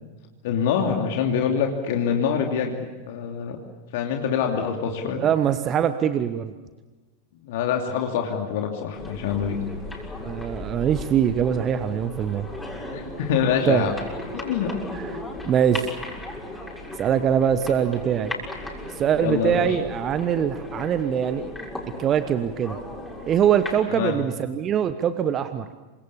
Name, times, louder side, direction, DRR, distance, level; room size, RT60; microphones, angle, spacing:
voice 1, 0.4-3.6 3.9-5.2 7.4-9.6 12.9-13.9 14.3-14.7 18.8-19.8 23.9-24.2, left 7 dB, 50° left, 2 dB, 2.8 m, -25 dB
voice 2, 5.1-6.5 10.2-12.5 13.7-13.9 14.9-15.1 15.5-16.0 17.0-18.3 19.0-21.5 22.0-22.8 23.3-25.7, right 9 dB, 30° right, 11 dB, 1.2 m, -23 dB
sound 1, 8.9-23.8, left 1 dB, 5° left, 6.7 m, -36 dB
28.0 x 26.0 x 7.1 m, 1.2 s
figure-of-eight pair, 90°, 0 cm